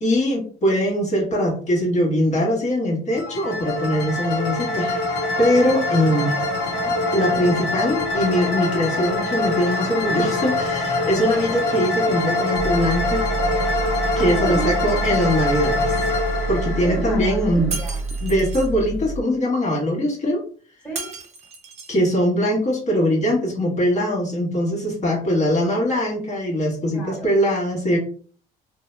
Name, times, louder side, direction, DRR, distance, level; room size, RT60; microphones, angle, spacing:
voice 1, 0.0-6.4 7.1-13.2 14.2-15.9 16.5-17.7 18.2-20.4 21.9-28.0, equal, 45° left, -2 dB, 1.1 m, -21 dB
sound 1, 3.1-17.9, left 2 dB, 75° left, 1.0 m, -24 dB
voice 2, 6.0-7.9 11.2-11.4 14.1-15.1 16.8-18.0 20.8-21.1 26.9-27.3, right 2 dB, 5° left, -3 dB, 1.2 m, -35 dB
sound 2, 12.5-19.2, right 3 dB, 75° right, 0.4 m, -28 dB
Shatter, 17.7-18.7 21.0-22.0, right 4 dB, 40° right, 0.7 m, -34 dB
2.7 x 2.2 x 3.1 m, 0.42 s
cardioid pair, 110°, 17 cm